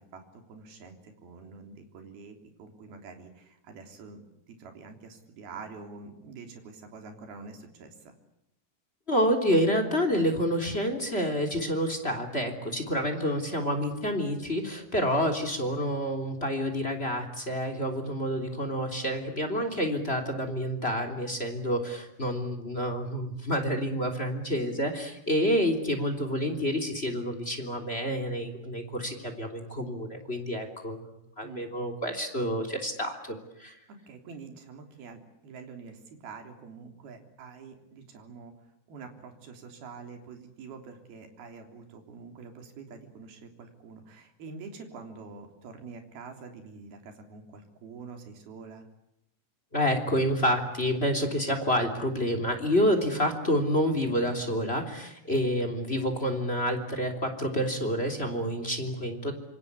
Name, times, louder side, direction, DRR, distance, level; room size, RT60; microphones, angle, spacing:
voice 1, 0.0-8.1 31.4-31.7 33.9-38.5 38.9-48.9, right 4 dB, 60° right, 5 dB, 5.2 m, -46 dB
voice 2, 9.1-33.8 49.7-59.4, equal, 15° left, 7 dB, 2.9 m, -28 dB
27.0 x 24.5 x 8.3 m, 0.83 s
omnidirectional pair, 5.0 m